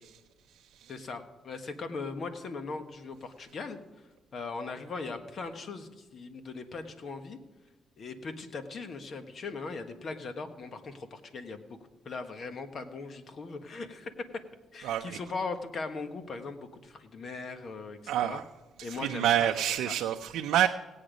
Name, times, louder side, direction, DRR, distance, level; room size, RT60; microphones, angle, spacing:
voice 1, 0.9-3.8 4.3-7.4 8.0-11.6 12.0-14.1 14.7-18.4 18.8-19.5 19.9-20.0 20.2-20.3, left 4 dB, 50° left, 8 dB, 1.4 m, -39 dB
voice 2, 14.8-15.2 18.1-18.4 18.9-20.7, right 11 dB, 85° right, 4 dB, 0.5 m, -27 dB
17.5 x 8.7 x 5.1 m, 1.2 s
cardioid pair, 100°, 0 cm